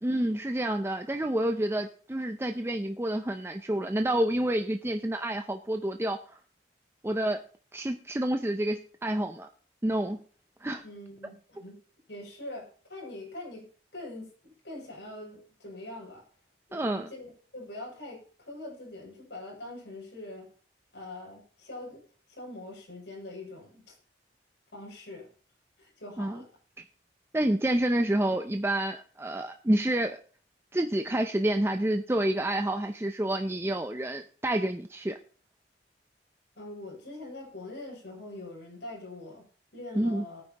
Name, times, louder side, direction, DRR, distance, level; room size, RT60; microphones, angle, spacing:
voice 1, 0.0-6.2 7.0-7.4 7.7-9.5 9.8-10.2 10.6-10.8 16.7-17.1 26.2-26.4 27.3-30.2 30.7-35.2 40.0-40.2, right 1 dB, 15° right, 6 dB, 0.5 m, -28 dB
voice 2, 10.8-11.8 12.1-13.7 13.9-16.2 16.7-20.5 20.9-22.0 22.3-23.9 24.7-25.3 25.8-26.5 36.6-39.5 39.7-40.4, left 2 dB, 80° left, -2 dB, 7.3 m, -43 dB
19.5 x 9.5 x 2.9 m, 0.42 s
head